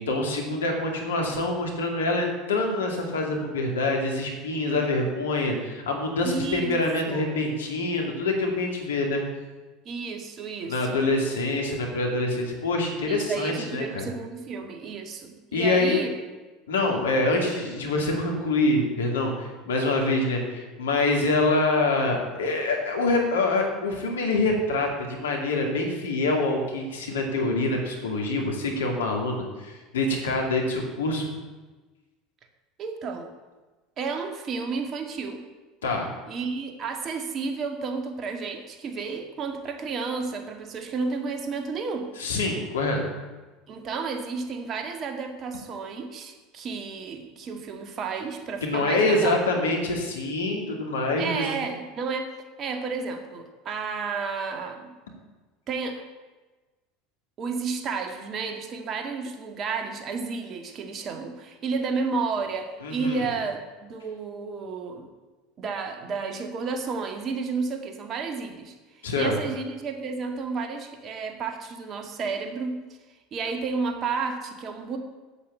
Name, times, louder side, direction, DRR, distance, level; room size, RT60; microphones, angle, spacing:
voice 1, 0.0-9.2 10.7-14.1 15.5-16.0 16.7-31.3 35.8-36.1 42.2-43.0 48.6-51.5 62.8-63.2 69.0-69.4, left 2 dB, 85° left, 1 dB, 2.4 m, -25 dB
voice 2, 6.2-6.7 7.1-7.3 9.9-11.0 13.0-16.1 32.8-33.3 34.0-35.4 36.3-42.1 43.7-49.4 51.2-52.3 52.6-54.9 55.7-56.0 57.4-65.1 65.6-72.8 73.3-75.0, right 4 dB, 45° right, 5 dB, 1.9 m, -32 dB
8.3 x 8.1 x 8.2 m, 1.2 s
hypercardioid pair, 75°, 0 cm